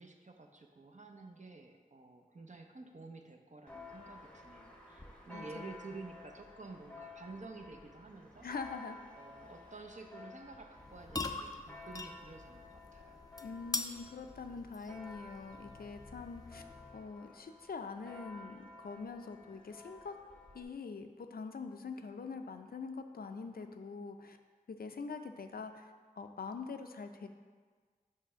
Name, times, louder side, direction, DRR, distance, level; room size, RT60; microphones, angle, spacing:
voice 1, 0.0-8.5 9.1-13.2, right 3 dB, 55° right, 4 dB, 0.7 m, -51 dB
Church bell, 3.7-20.6, left 3 dB, 5° left, 0.8 m, -54 dB
voice 2, 5.3-5.7 8.4-9.0 13.4-16.6 16.9-20.1 20.5-24.4 24.7-27.3, left 4 dB, 85° left, 6 dB, 0.4 m, -44 dB
sound 1, 10.7-17.1, left 2 dB, 25° left, 0.4 m, -44 dB
7.5 x 3.2 x 5.6 m, 1.5 s
wide cardioid pair, 65°, 15 cm